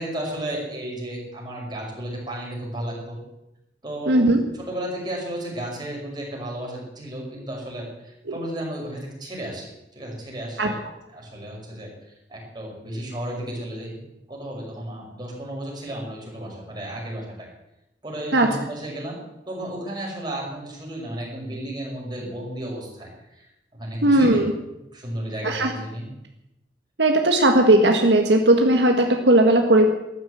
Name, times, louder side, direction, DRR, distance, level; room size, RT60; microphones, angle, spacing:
voice 1, 0.0-3.2 3.8-4.3 4.5-10.8 11.1-11.9 12.3-14.0 14.3-17.5 18.0-19.2 19.5-23.4 23.8-24.4 24.9-26.1, right 1 dB, 25° right, -2 dB, 5.8 m, -33 dB
voice 2, 4.1-4.4 8.3-8.4 10.6-10.7 18.3-18.5 24.0-24.5 25.4-25.7 27.0-29.9, right 1 dB, 80° right, 3 dB, 1.7 m, -17 dB
13.5 x 11.5 x 8.0 m, 0.90 s
head